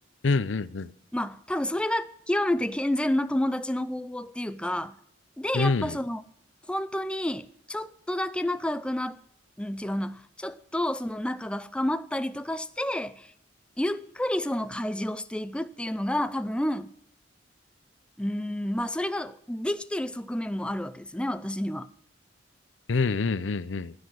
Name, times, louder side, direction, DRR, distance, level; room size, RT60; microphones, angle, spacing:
voice 1, 0.2-0.9 5.5-6.0 22.9-23.9, left 4 dB, 90° left, 0.6 m, -26 dB
voice 2, 1.1-5.0 5.4-6.2 6.7-9.2 9.6-13.3 13.8-16.9 18.2-21.9, left 1 dB, 5° left, 0.5 m, -30 dB
15.5 x 9.7 x 6.2 m
head